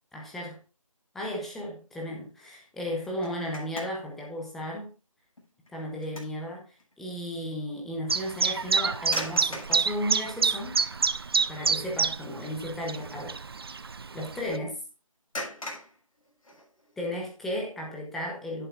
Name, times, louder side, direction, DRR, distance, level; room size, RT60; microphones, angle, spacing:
voice 1, 0.1-0.6 1.1-4.9 5.7-6.6 7.0-10.8 11.5-13.4 14.1-14.8 17.0-18.7, equal, ahead, -1 dB, 0.8 m, -34 dB
sound 1, 3.0-4.2 4.6-4.8 5.4-6.4 6.8-6.9 9.0-9.9 10.8-10.9 11.3-11.6 11.8-12.1 15.3-16.9, left 1 dB, 80° left, 6.5 m, -39 dB
Chirp tweet, 8.1-14.6, right 5 dB, 45° right, 0.5 m, -28 dB
10.5 x 10.5 x 2.5 m, 0.31 s
figure-of-eight pair, 165°, 18 cm